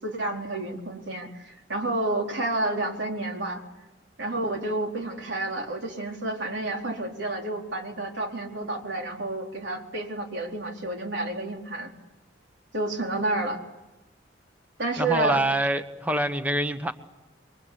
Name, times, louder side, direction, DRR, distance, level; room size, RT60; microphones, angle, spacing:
voice 1, 0.0-3.6 4.2-11.9 12.7-13.6 14.8-15.4, right 2 dB, 65° right, 4.2 m, -30 dB
voice 2, 15.0-16.9, right 1 dB, 10° right, 1.2 m, -25 dB
29.0 x 23.5 x 8.4 m
head